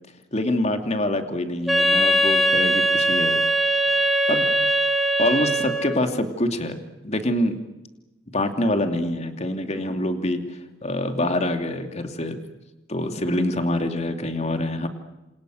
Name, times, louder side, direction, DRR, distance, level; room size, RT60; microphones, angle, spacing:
voice 1, 0.3-3.4 3.7-4.5 5.2-7.6 8.3-12.4 12.9-14.9, left 1 dB, 40° left, 7 dB, 2.8 m, -25 dB
Wind instrument woodwind instrument, 1.7-6.1, right 1 dB, ahead, 2.1 m, -21 dB
28.5 x 28.0 x 6.5 m, 1.0 s
head